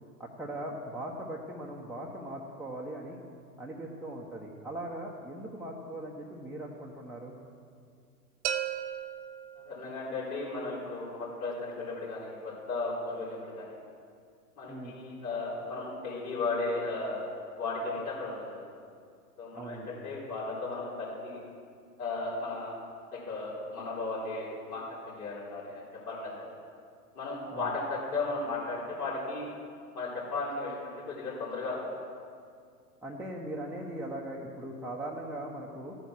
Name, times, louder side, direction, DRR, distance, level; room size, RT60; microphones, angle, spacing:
voice 1, 0.2-3.2 3.6-7.3 14.7-15.0 19.5-20.0 27.5-27.7 33.0-35.9, right 1 dB, ahead, -6 dB, 1.0 m, -40 dB
sound 1, 8.4-10.3, right 9 dB, 45° right, 0.9 m, -36 dB
voice 2, 9.6-13.8 14.6-17.2 17.6-18.7 19.4-21.4 22.0-22.7 23.1-26.3 27.1-29.5 29.9-32.0, left 3 dB, 65° left, -7 dB, 4.3 m, -35 dB
14.0 x 9.2 x 6.2 m, 2.2 s
figure-of-eight pair, 100°, 49 cm